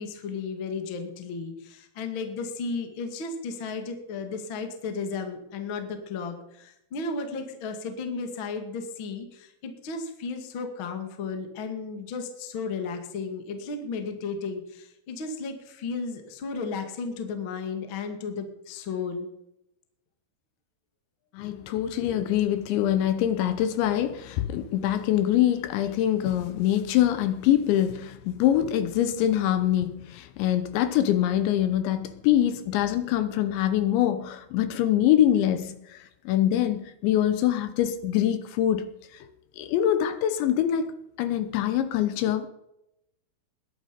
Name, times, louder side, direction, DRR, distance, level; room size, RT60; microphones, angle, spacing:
voice 1, 0.0-19.3, left 4 dB, 50° left, 1.5 m, -34 dB
voice 2, 21.3-38.9 39.6-42.5, left 11 dB, 75° left, 3.0 m, -24 dB
20.0 x 11.0 x 5.2 m
omnidirectional pair, 5.6 m